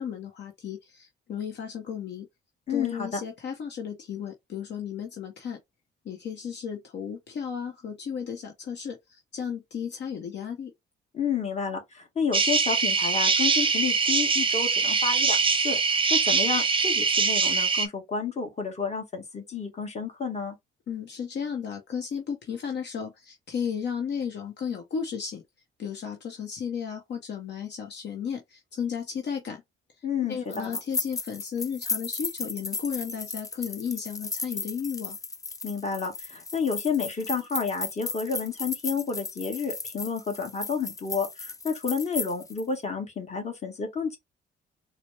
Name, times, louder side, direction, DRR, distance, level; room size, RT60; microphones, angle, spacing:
voice 1, 0.0-2.3 2.7-5.6 6.0-10.7 20.9-25.4 25.8-29.6 30.3-35.2, left 7 dB, 60° left, 0.9 m, -34 dB
voice 2, 2.7-3.2 11.1-20.6 30.0-30.8 35.6-44.2, left 5 dB, 35° left, 1.5 m, -30 dB
sound 1, 12.3-17.9, right 5 dB, 25° right, 0.6 m, -23 dB
sound 2, 30.5-42.6, left 3 dB, 15° left, 0.4 m, -35 dB
4.1 x 2.1 x 3.2 m
cardioid pair, 90°, 20 cm